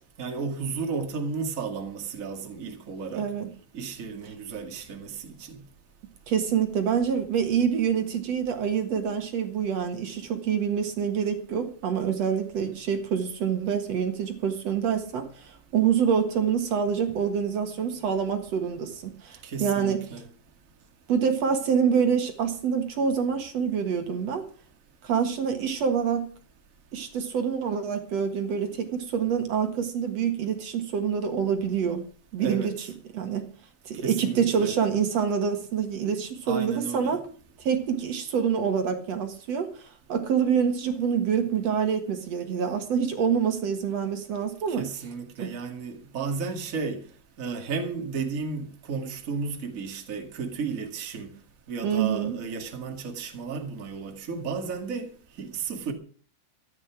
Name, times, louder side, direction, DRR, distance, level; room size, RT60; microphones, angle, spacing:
voice 1, 0.2-3.3 3.7-5.6 19.4-20.3 32.4-32.9 34.0-34.7 36.5-37.2 44.7-47.1 47.4-51.3 51.7-55.9, right 5 dB, 30° right, 2.0 m, -33 dB
voice 2, 3.1-3.5 6.3-20.0 21.1-24.4 25.0-26.3 26.9-32.0 32.3-32.9 33.1-33.5 33.9-37.2 37.6-44.9 45.4-45.5 51.8-52.4, right 7 dB, 55° right, 2.5 m, -26 dB
14.0 x 10.5 x 6.0 m
omnidirectional pair, 3.9 m